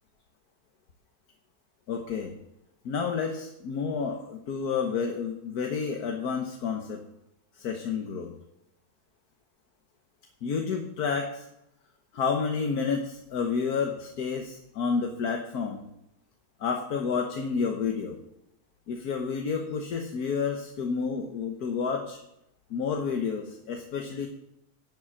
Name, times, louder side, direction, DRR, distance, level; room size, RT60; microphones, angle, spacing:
voice 1, 1.9-2.4 2.9-7.0 7.5-8.3 10.4-11.5 12.1-15.8 16.6-18.2 18.9-22.2 22.7-24.3, left 5 dB, 85° left, 3 dB, 1.6 m, -30 dB
11.0 x 7.4 x 6.3 m, 0.83 s
omnidirectional pair, 1.6 m